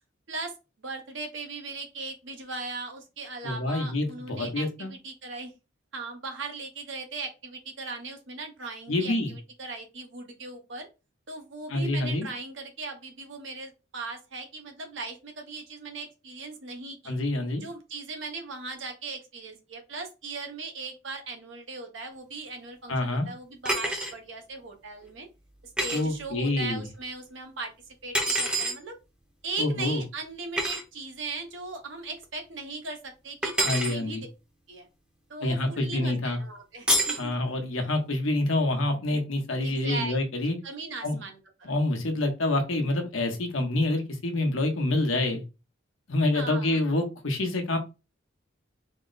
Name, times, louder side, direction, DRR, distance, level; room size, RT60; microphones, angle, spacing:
voice 1, 0.3-5.5 5.9-10.9 11.3-17.2 17.6-25.3 25.8-27.7 28.0-29.0 29.4-34.3 34.7-34.9 35.3-37.3 39.6-40.1 40.6-41.7 46.3-46.8, right 3 dB, 65° right, 4 dB, 1.0 m, -38 dB
voice 2, 3.4-4.9 8.9-9.3 11.7-12.3 17.1-17.6 22.9-23.3 25.9-26.9 29.6-30.0 33.6-34.2 35.4-36.4 37.2-40.6 41.0-41.2 41.6-45.4 46.1-47.8, left 2 dB, 85° left, 4 dB, 1.0 m, -27 dB
sound 1, 23.7-24.1 25.8-26.0 28.1-28.8 30.6-30.8 33.4-34.0 36.9-37.2, right 1 dB, 5° right, 0.8 m, -26 dB
4.2 x 2.1 x 4.0 m, 0.28 s
head